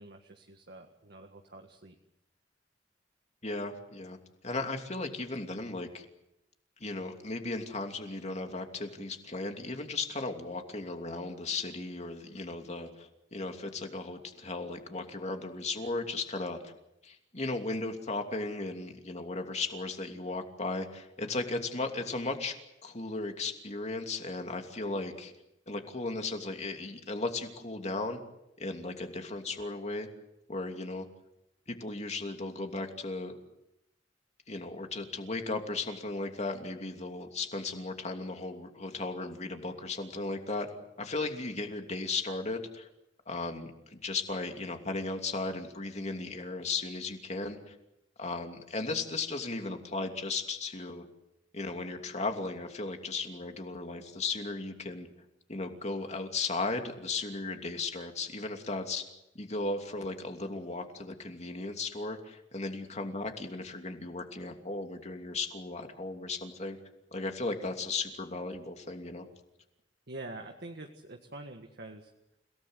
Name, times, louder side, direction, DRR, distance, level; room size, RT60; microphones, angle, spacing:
voice 1, 0.0-2.0 70.1-72.1, right 2 dB, 60° right, 3 dB, 1.7 m, -46 dB
voice 2, 3.4-4.2 4.4-6.0 6.8-16.7 17.0-22.6 22.8-25.3 25.7-28.2 28.6-30.1 30.5-31.1 31.7-33.4 34.5-42.9 43.3-47.8 48.2-51.0 51.5-55.1 55.5-59.0 59.3-66.8 67.1-69.3, left 3 dB, 40° left, 4 dB, 2.8 m, -36 dB
30.0 x 18.0 x 8.0 m, 0.88 s
head